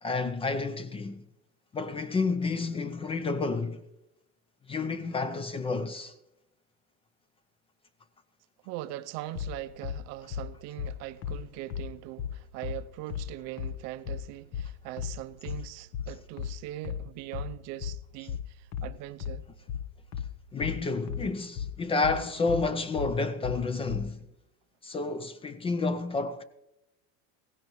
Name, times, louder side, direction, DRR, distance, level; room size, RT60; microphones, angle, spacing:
voice 1, 0.0-1.2 1.7-3.8 4.7-6.1 20.5-24.2 24.8-26.4, left 3 dB, 15° left, 0.4 m, -30 dB
voice 2, 8.6-19.5, right 15 dB, 50° right, 0.6 m, -41 dB
sound 1, 9.3-24.1, left 8 dB, 50° left, 0.8 m, -36 dB
16.0 x 16.0 x 3.1 m
supercardioid pair, 135°, 33 cm